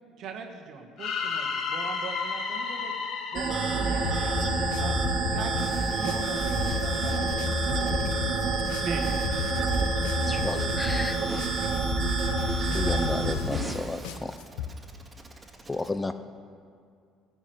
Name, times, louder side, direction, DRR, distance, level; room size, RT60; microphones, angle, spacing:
voice 1, 0.2-2.9 3.3-5.0 5.3-8.4 8.8-9.1, right 5 dB, 60° right, 2 dB, 1.2 m, -40 dB
sound 1, 1.0-5.0, left 5 dB, 60° left, 1.2 m, -33 dB
sound 2, 3.3-13.3, right 3 dB, 45° right, 1.7 m, -28 dB
sound 3, 4.0-14.7, left 8 dB, 90° left, 0.6 m, -33 dB
voice 2, 5.6-7.2 8.6-9.6 10.1-11.8 12.2-14.4, right 2 dB, 15° right, 0 dB, 2.0 m, -43 dB
voice 3, 10.3-11.2 12.6-14.3 15.7-16.1, left 2 dB, 15° left, 10 dB, 0.5 m, -32 dB
13.5 x 6.1 x 7.7 m, 2.3 s
cardioid pair, 105°, 0 cm